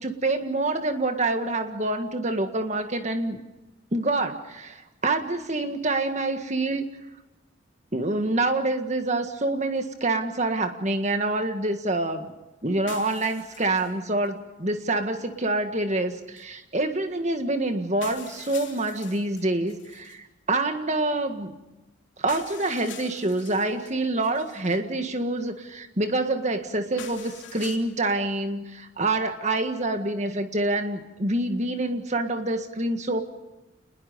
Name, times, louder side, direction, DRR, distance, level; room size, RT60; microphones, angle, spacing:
voice 1, 0.0-3.4 3.9-6.8 7.9-12.3 12.6-21.6 22.2-33.2, right 2 dB, 35° right, 7 dB, 1.8 m, -26 dB
sound 1, 12.9-14.0 14.2-14.3 16.4-16.5 17.4-17.5 18.0-20.2 22.3-23.9 24.2-24.8 27.0-27.8, left 8 dB, 65° left, 3.1 m, -44 dB
28.5 x 21.0 x 5.4 m, 1.0 s
head